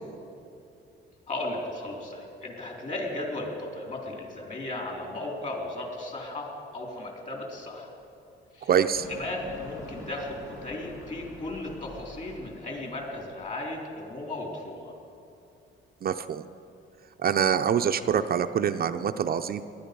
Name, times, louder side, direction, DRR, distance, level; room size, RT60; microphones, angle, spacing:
voice 1, 1.3-7.9 8.5-8.7 9.1-14.9, left 2 dB, 40° left, 0 dB, 3.9 m, -36 dB
voice 2, 8.7-9.1 16.0-16.4 17.2-19.6, right 8 dB, 50° right, 8 dB, 0.5 m, -25 dB
sound 1, 8.9-13.5, left 2 dB, 80° left, 2.2 m, -46 dB
19.0 x 11.5 x 5.4 m, 2.6 s
cardioid pair, 90°, 20 cm